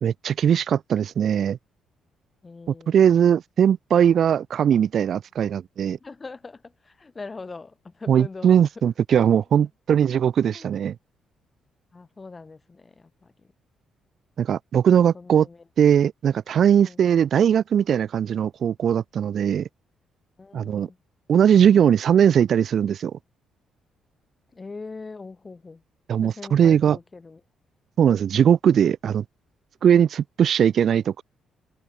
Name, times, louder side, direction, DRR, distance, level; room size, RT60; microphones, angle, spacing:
voice 1, 0.0-1.6 2.9-6.0 8.1-11.0 14.4-15.5 15.8-19.7 20.5-20.9 21.3-23.1 26.1-27.0 28.0-29.2 29.8-31.2, right 8 dB, 60° right, 0.4 m, -20 dB
voice 2, 2.4-3.1 6.0-8.7 10.5-10.7 11.9-13.5 15.1-15.6 16.6-17.0 20.4-21.0 24.5-25.8 26.2-27.4, left 3 dB, 25° left, 6.4 m, -42 dB
cardioid pair, 90°, 0 cm